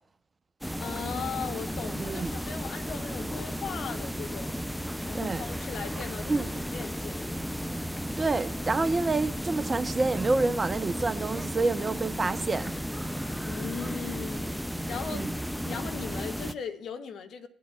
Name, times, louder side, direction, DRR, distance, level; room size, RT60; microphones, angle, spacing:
sound 1, 0.6-16.5, equal, ahead, 0.4 m, -34 dB
voice 1, 0.8-4.6 5.0-7.3 13.4-14.5 14.9-17.5, left 7 dB, 60° left, 0.9 m, -38 dB
voice 2, 2.0-2.3 5.1-5.4 6.3-6.5 8.2-12.7 15.1-15.3, right 3 dB, 35° right, 0.7 m, -28 dB
19.0 x 8.4 x 2.3 m
hypercardioid pair, 50°, 0 cm